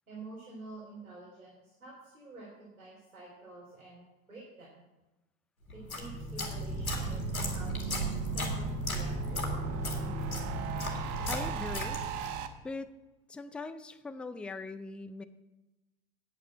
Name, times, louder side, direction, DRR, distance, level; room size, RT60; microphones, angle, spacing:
voice 1, 0.1-4.8 5.7-7.2 7.5-9.5, right 2 dB, 85° right, -5 dB, 3.5 m, -49 dB
sound 1, 5.7-12.4, equal, 85° left, 2.4 m, -35 dB
sound 2, 6.3-12.5, right 6 dB, 45° right, 1.2 m, -38 dB
voice 2, 11.3-12.0 12.6-12.9 13.3-15.2, left 3 dB, 5° left, 12 dB, 0.3 m, -40 dB
9.3 x 9.1 x 7.3 m, 1.0 s
figure-of-eight pair, 75°, 42 cm